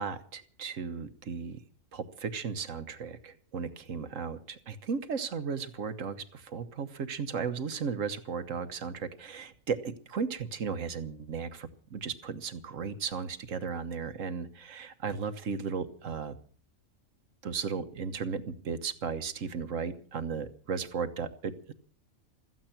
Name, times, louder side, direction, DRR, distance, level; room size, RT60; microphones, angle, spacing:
voice 1, 0.0-1.6 1.9-16.4 17.4-21.7, right 5 dB, 70° right, 10 dB, 1.5 m, -35 dB
15.5 x 14.0 x 5.9 m, 0.43 s
omnidirectional pair, 1.4 m